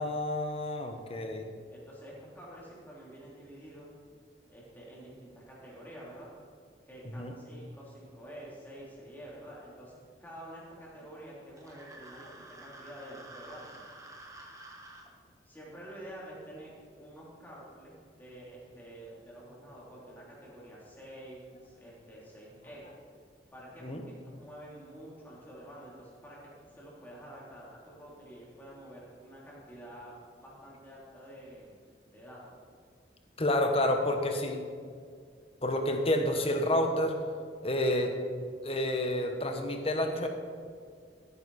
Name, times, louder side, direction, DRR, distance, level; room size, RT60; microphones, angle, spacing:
voice 1, 0.0-1.5 7.1-7.3 23.8-24.0 33.4-34.6 35.6-37.2 37.6-38.1 38.6-40.3, left 1 dB, 35° left, 4 dB, 1.2 m, -29 dB
voice 2, 1.7-3.9 4.5-6.3 6.9-13.8 15.4-22.9 23.5-31.7 32.1-32.6, right 1 dB, 10° left, -6 dB, 3.4 m, -48 dB
sound 1, 11.6-15.1, right 2 dB, 20° right, 1.3 m, -50 dB
14.5 x 9.7 x 4.3 m, 2.1 s
head